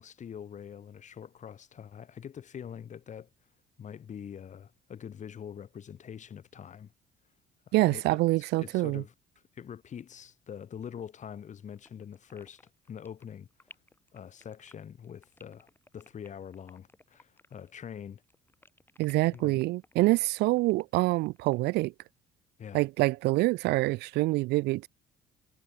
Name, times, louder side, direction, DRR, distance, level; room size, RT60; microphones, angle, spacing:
voice 1, 0.0-3.3 3.8-6.9 7.7-9.1 9.5-12.6 12.9-13.5 14.1-18.2 19.3-19.6 22.6-22.8, left 8 dB, 45° left, 6.5 m, -44 dB
voice 2, 7.7-9.0 19.0-21.9 22.7-24.9, right 20 dB, 80° right, 0.4 m, -26 dB
sound 1, 11.8-17.9 18.2-21.6, left 2 dB, 10° left, 4.3 m, -58 dB
cardioid pair, 110°, 17 cm